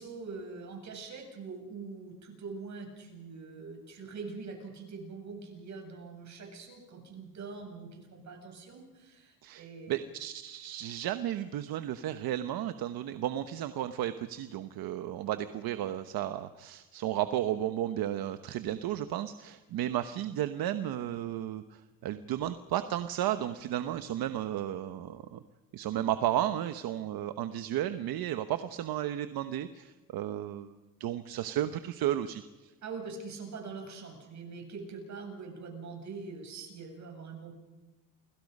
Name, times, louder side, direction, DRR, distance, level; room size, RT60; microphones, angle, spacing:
voice 1, 0.0-10.0 32.8-37.5, right 4 dB, 50° right, 3 dB, 8.0 m, -43 dB
voice 2, 9.4-25.4 25.7-32.7, right 12 dB, 75° right, 10 dB, 1.1 m, -33 dB
29.0 x 21.5 x 5.4 m, 1.2 s
cardioid pair, 130°, 37 cm